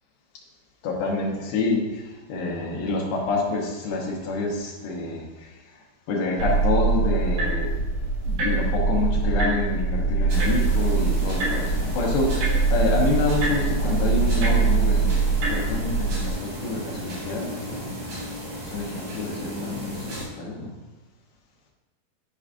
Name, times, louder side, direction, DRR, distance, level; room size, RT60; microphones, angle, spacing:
voice 1, 0.8-5.5 6.1-7.7 8.3-18.0 18.6-20.7, left 3 dB, 70° left, -3 dB, 2.2 m, -27 dB
sound 1, 6.4-16.3, right 4 dB, 80° right, 3.6 m, -23 dB
sound 2, 10.3-20.2, right 1 dB, 60° right, 3.8 m, -35 dB
11.0 x 4.8 x 2.5 m, 1.1 s
omnidirectional pair, 5.0 m